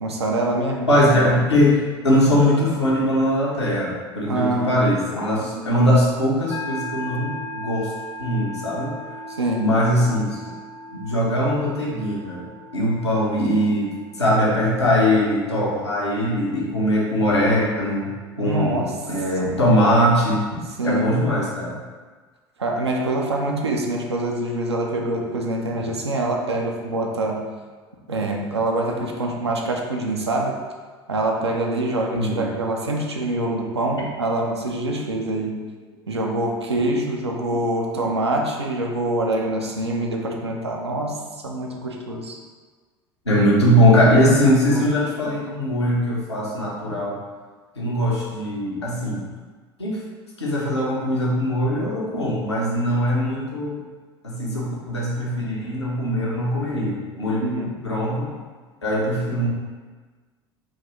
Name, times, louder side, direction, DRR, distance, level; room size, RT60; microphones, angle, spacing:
voice 1, 0.0-0.9 4.2-4.8 9.3-9.7 18.4-19.0 19.4-19.5 20.8-21.1 22.6-27.4 28.1-30.6 31.1-35.5 36.1-41.2 41.4-42.4 44.7-44.9 57.4-57.7, right 2 dB, 80° right, 1 dB, 0.4 m, -25 dB
voice 2, 0.9-7.9 8.2-8.9 9.6-10.4 10.9-12.4 12.7-13.9 14.2-18.1 18.4-20.4 20.8-21.8 32.1-32.5 38.0-38.1 43.3-47.2 47.8-49.2 49.8-50.0 50.4-53.8 54.2-57.4 57.8-58.3 58.8-59.5, equal, 80° left, -5 dB, 0.8 m, -21 dB
sound 1, 6.5-20.4, equal, 35° left, 0.5 m, -39 dB
3.7 x 2.6 x 3.0 m, 1.4 s
figure-of-eight pair, 70°, 14 cm